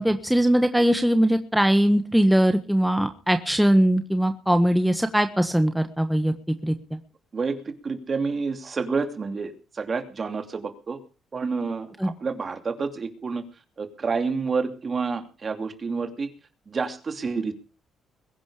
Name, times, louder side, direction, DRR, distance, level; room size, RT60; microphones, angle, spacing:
voice 1, 0.0-7.0 12.0-12.1, right 1 dB, 5° right, 7 dB, 1.4 m, -21 dB
voice 2, 7.3-11.0 11.3-13.4 13.8-16.3 16.7-17.5, right 4 dB, 40° right, 7 dB, 2.8 m, -29 dB
22.0 x 10.5 x 5.1 m, 0.36 s
cardioid pair, 90°, 0 cm